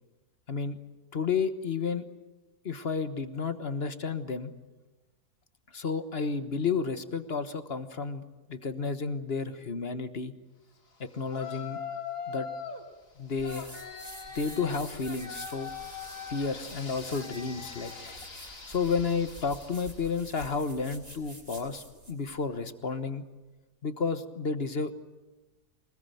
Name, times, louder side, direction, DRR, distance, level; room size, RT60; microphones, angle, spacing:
voice 1, 0.5-0.8 1.1-2.0 2.6-4.5 5.7-8.2 8.5-10.3 11.0-11.8 12.3-12.5 13.2-13.8 14.3-15.7 16.3-17.9 18.7-23.2 23.8-24.9, left 5 dB, 40° left, 10 dB, 1.4 m, -31 dB
Yell, 11.3-12.9 13.4-20.1, left 6 dB, 85° left, 3.8 m, -41 dB
sound 1, 13.4-22.4, right 1 dB, 25° right, 5.8 m, -49 dB
24.5 x 20.5 x 9.1 m, 1.1 s
omnidirectional pair, 1.7 m